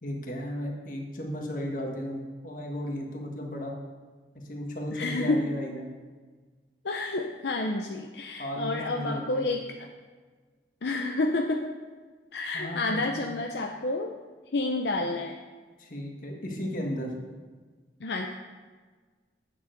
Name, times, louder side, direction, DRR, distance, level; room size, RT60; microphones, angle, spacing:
voice 1, 0.0-3.7 4.3-5.9 8.4-9.5 12.5-13.3 15.8-17.1, equal, 45° left, 1 dB, 1.6 m, -35 dB
voice 2, 4.9-5.4 6.8-9.9 10.8-11.7 12.3-14.1 14.5-15.4 18.0-18.3, left 2 dB, 75° left, 3 dB, 0.6 m, -29 dB
8.6 x 7.0 x 6.4 m, 1.4 s
head